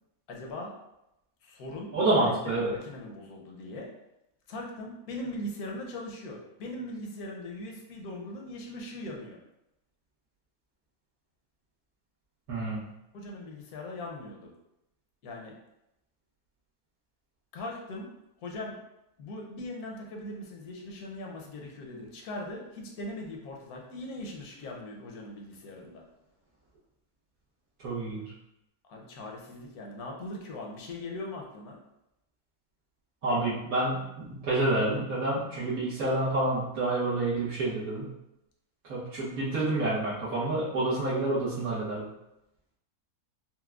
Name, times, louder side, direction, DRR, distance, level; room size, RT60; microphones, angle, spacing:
voice 1, 0.3-0.8 1.4-3.9 4.5-9.4 13.1-14.5 15.2-15.6 17.5-18.1 18.4-18.8 19.2-26.0 28.9-31.8, left 1 dB, 80° left, 0 dB, 1.1 m, -40 dB
voice 2, 1.9-2.7 12.5-12.8 27.8-28.2 33.2-38.1 38.9-42.0, right 2 dB, 75° right, -11 dB, 1.4 m, -28 dB
4.4 x 2.0 x 2.3 m, 0.87 s
omnidirectional pair, 1.6 m